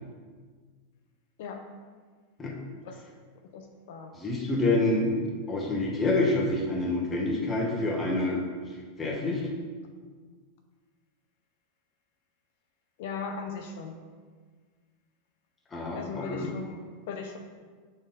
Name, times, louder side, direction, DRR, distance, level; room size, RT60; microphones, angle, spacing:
voice 1, 3.5-4.1 13.0-13.9 15.9-17.4, left 5 dB, 60° left, 4 dB, 0.5 m, -38 dB
voice 2, 4.1-5.2 5.5-8.4 9.0-9.4 15.7-16.5, left 2 dB, 15° left, -3 dB, 1.0 m, -27 dB
6.3 x 3.8 x 3.8 m, 1.5 s
supercardioid pair, 160°, 0 cm